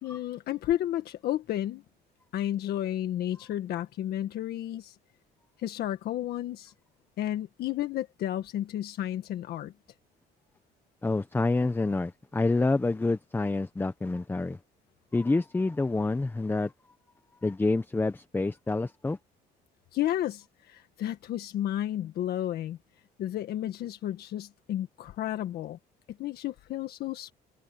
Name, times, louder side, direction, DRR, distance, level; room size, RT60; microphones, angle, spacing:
voice 1, 0.0-1.8 2.3-5.0 5.6-6.7 7.2-9.7 19.9-22.8 23.2-25.8 26.1-27.3, left 12 dB, 70° left, 1.7 m, -32 dB
voice 2, 11.0-14.6 15.1-16.7 17.4-19.2, left 3 dB, 10° left, 0.9 m, -27 dB
cardioid pair, 110°, 17 cm